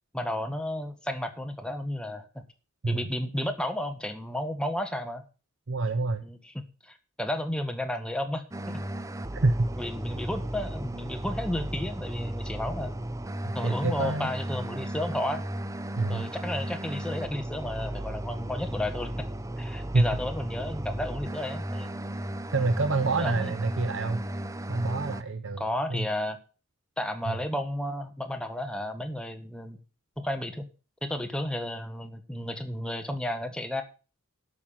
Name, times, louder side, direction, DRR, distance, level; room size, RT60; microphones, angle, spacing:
voice 1, 0.1-2.3 2.9-5.2 6.2-6.5 6.8-8.8 9.7-12.9 13.5-15.4 16.1-19.3 19.6-21.9 23.2-23.5 25.6-26.4 27.0-29.8 30.2-30.6 31.0-33.8, left 1 dB, 5° left, 6 dB, 1.5 m, -32 dB
voice 2, 5.7-6.2 9.4-9.7 13.4-14.3 16.0-16.3 19.9-20.1 22.5-24.2 24.7-26.0, right 3 dB, 60° right, 10 dB, 0.7 m, -27 dB
sound 1, 8.5-25.2, right 1 dB, 15° right, 0.6 m, -35 dB
12.0 x 6.0 x 7.4 m, 0.35 s
head